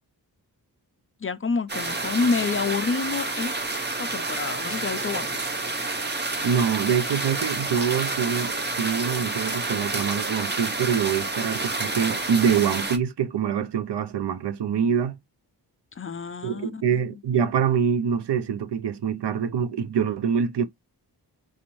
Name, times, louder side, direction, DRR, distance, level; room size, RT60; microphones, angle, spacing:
voice 1, 1.2-3.5 4.0-5.5 15.9-17.2, left 4 dB, 35° left, 0.4 m, -28 dB
sound 1, 1.7-13.0, right 3 dB, 25° right, 0.7 m, -29 dB
voice 2, 6.4-15.2 16.4-20.7, right 7 dB, 80° right, 0.6 m, -25 dB
4.1 x 2.5 x 3.0 m
wide cardioid pair, 130°, 41 cm